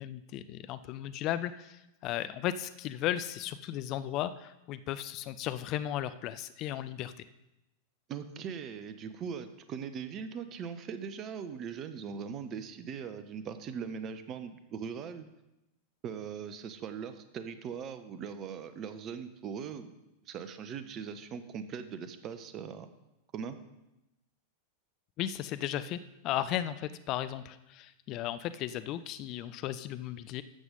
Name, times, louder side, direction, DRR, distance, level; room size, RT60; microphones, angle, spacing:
voice 1, 0.0-7.1 25.2-30.4, left 12 dB, 40° left, 13 dB, 0.5 m, -35 dB
voice 2, 8.1-15.3 16.0-19.9 20.2-22.9 23.3-23.6, right 7 dB, 30° right, 10 dB, 1.0 m, -40 dB
13.0 x 8.0 x 5.3 m, 0.94 s
figure-of-eight pair, 90°, 0 cm